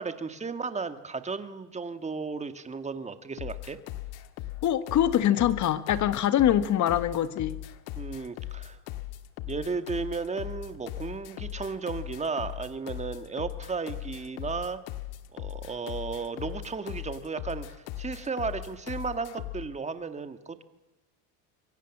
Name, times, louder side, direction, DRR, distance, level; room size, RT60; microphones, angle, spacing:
voice 1, 0.0-3.8 8.0-8.8 9.5-14.8 15.3-17.7 18.0-20.6, right 4 dB, 15° right, 10 dB, 1.8 m, -34 dB
sound 1, 3.4-19.7, left 14 dB, 65° left, 1.8 m, -39 dB
voice 2, 4.6-7.6, left 11 dB, 45° left, 13 dB, 1.7 m, -24 dB
27.0 x 23.0 x 7.3 m, 1.0 s
cardioid pair, 130°, 39 cm